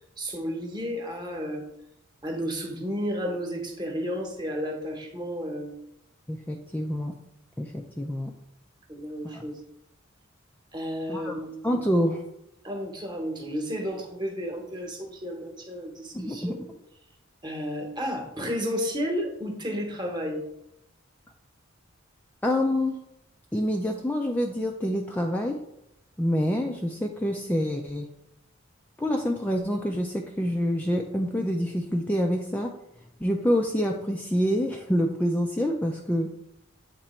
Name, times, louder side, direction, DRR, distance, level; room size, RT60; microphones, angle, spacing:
voice 1, 0.2-1.6 2.2-5.7 8.9-9.6 10.7-11.6 12.6-16.6 17.4-20.4, equal, 20° right, 2 dB, 1.0 m, -32 dB
voice 2, 6.3-7.1 7.6-8.3 9.2-9.5 11.1-11.4 11.6-12.2 16.1-16.7 22.4-23.0 23.5-25.6 26.2-28.1 29.0-32.7 33.2-36.3, equal, 10° left, 1 dB, 0.3 m, -27 dB
7.5 x 3.0 x 4.3 m, 0.81 s
head